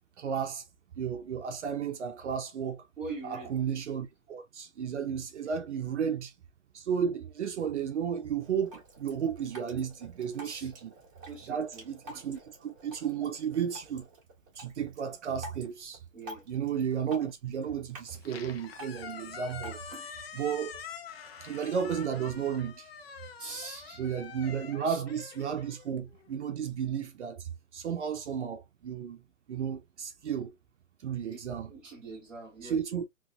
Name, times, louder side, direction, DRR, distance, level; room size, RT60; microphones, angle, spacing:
voice 1, 0.2-0.6 1.0-2.9 3.2-6.3 6.7-10.9 11.5-14.1 14.6-16.0 16.5-19.8 20.3-20.8 21.4-22.9 24.0-29.2 29.5-30.5 31.0-31.7 32.6-33.0, right 7 dB, 60° right, 0.7 m, -33 dB
voice 2, 3.0-3.5 5.4-5.5 10.4-10.7 11.3-12.2 16.1-16.5 19.9-20.1 23.4-24.0 24.8-25.0 31.3-31.4 31.7-32.8, right 3 dB, ahead, 0.7 m, -43 dB
Drip, 8.4-20.4, equal, 25° right, 1.8 m, -50 dB
Squeak, 18.1-26.4, left 6 dB, 50° left, 0.7 m, -46 dB
3.7 x 3.0 x 2.4 m
hypercardioid pair, 170°, 39 cm